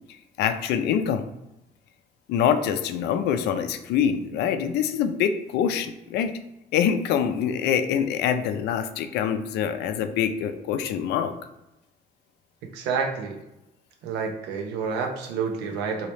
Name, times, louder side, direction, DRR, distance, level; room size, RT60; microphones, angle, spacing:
voice 1, 0.4-1.2 2.3-6.3 6.7-11.3, left 8 dB, 80° left, 9 dB, 0.4 m, -25 dB
voice 2, 12.6-13.4 14.0-16.1, right 5 dB, 90° right, 2 dB, 0.6 m, -29 dB
3.0 x 2.7 x 3.2 m, 0.92 s
cardioid pair, 110°, 17 cm